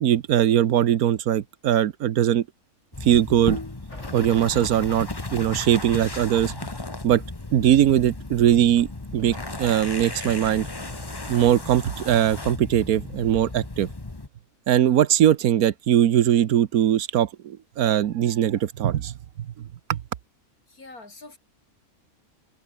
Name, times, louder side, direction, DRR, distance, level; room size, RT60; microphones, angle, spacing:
voice 1, 0.0-2.4 3.0-3.6 4.1-6.6 7.0-7.2 7.5-10.7 11.3-13.9 14.7-19.1 19.4-20.0, right 11 dB, 85° right, 1.4 m, -21 dB
sound 1, 2.9-14.3, left 2 dB, 15° left, 1.3 m, -35 dB
sound 2, 3.9-6.0 8.9-11.7, left 1 dB, 55° left, 7.6 m, -51 dB
voice 2, 20.7-21.4, left 3 dB, 85° left, 5.1 m, -44 dB
omnidirectional pair, 1.5 m